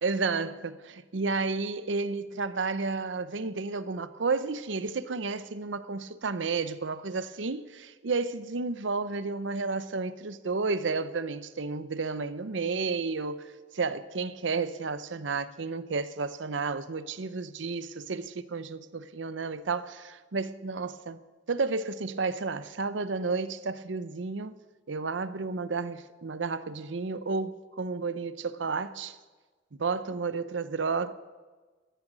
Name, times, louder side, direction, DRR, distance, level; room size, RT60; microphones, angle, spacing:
voice 1, 0.0-13.5 13.7-21.2 21.5-24.6 24.9-29.2 29.8-31.1, right 4 dB, 80° right, 0.7 m, -32 dB
15.0 x 13.0 x 6.2 m
head